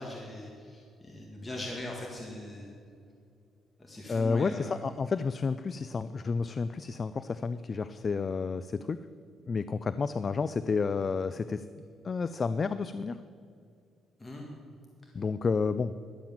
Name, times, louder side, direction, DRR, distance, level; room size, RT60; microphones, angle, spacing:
voice 1, 0.0-2.7 3.8-4.8 14.2-14.5, left 1 dB, 20° left, -1 dB, 1.8 m, -40 dB
voice 2, 4.1-9.0 9.5-11.6 12.0-13.2 15.1-15.9, left 4 dB, 40° left, 14 dB, 0.4 m, -30 dB
11.5 x 7.6 x 7.2 m, 2.4 s
cardioid pair, 90°, 0 cm